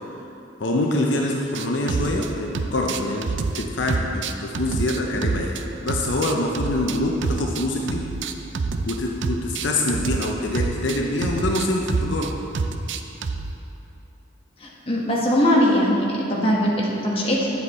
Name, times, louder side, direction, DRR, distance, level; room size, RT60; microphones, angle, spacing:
voice 1, 0.6-5.6 5.8-8.0 8.9-12.3, left 1 dB, 70° left, 0 dB, 0.7 m, -25 dB
sound 1, 1.5-2.3 2.5-5.6 5.9-9.0 9.2-13.5, right 4 dB, 70° right, 0.5 m, -27 dB
voice 2, 14.6-17.5, equal, 30° left, -4 dB, 1.3 m, -21 dB
9.8 x 7.1 x 4.2 m, 2.9 s
head